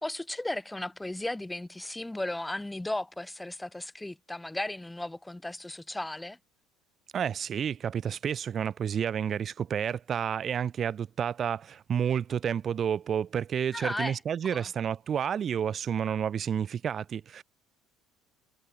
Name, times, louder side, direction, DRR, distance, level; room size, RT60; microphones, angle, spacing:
voice 1, 0.0-6.4 13.7-14.2 14.5-14.7, left 1 dB, 5° left, 1.0 m, -35 dB
voice 2, 7.1-17.4, right 8 dB, 40° right, 0.5 m, -30 dB
cardioid pair, 120°, 0 cm